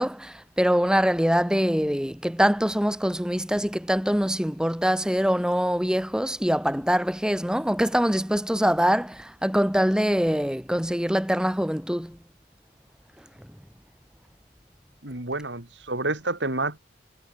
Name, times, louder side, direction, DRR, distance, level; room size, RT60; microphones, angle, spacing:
voice 1, 0.0-12.2, equal, 5° right, 2.0 m, -24 dB
voice 2, 15.0-16.8, right 2 dB, 85° right, 4.7 m, -29 dB
head